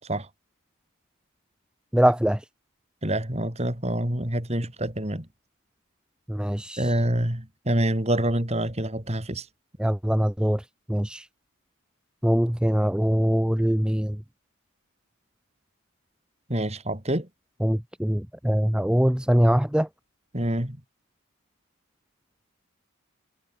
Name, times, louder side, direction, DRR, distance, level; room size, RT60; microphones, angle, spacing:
voice 1, 1.9-2.4 6.3-7.0 9.8-10.6 10.9-11.3 12.2-14.2 17.6-19.9, equal, 5° right, 0.5 m, -23 dB
voice 2, 3.0-5.3 6.8-9.5 16.5-17.3 20.3-20.8, right 1 dB, 30° right, 3.5 m, -26 dB
head